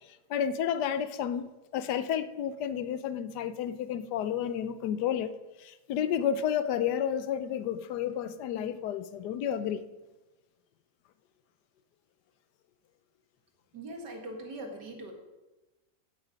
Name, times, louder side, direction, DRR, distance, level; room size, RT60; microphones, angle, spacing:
voice 1, 0.3-5.3 5.6-9.8, left 9 dB, 80° left, 1.2 m, -31 dB
voice 2, 13.7-15.1, right 1 dB, 85° right, 2.4 m, -41 dB
15.5 x 6.5 x 5.1 m
omnidirectional pair, 1.8 m